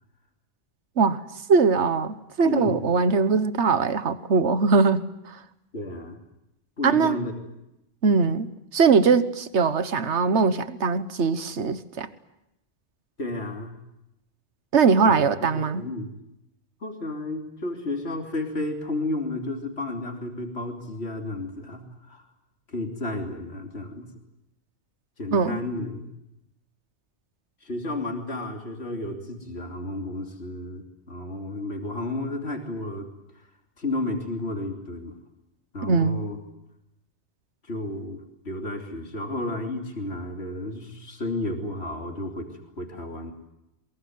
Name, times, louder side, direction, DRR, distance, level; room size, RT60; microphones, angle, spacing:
voice 1, 1.5-5.0 5.3-5.4 6.8-7.2 8.0-8.5 8.7-12.1 14.7-15.8 25.3-25.6 35.8-36.2, right 5 dB, 80° right, 1.5 m, -21 dB
voice 2, 2.4-2.8 5.7-6.2 6.8-7.5 13.2-13.8 15.0-16.1 16.8-22.2 22.7-24.1 25.2-26.1 27.6-33.1 33.8-35.2 35.7-36.4 37.6-43.3, left 2 dB, 65° left, 3.4 m, -32 dB
23.5 x 22.0 x 9.5 m
omnidirectional pair, 1.2 m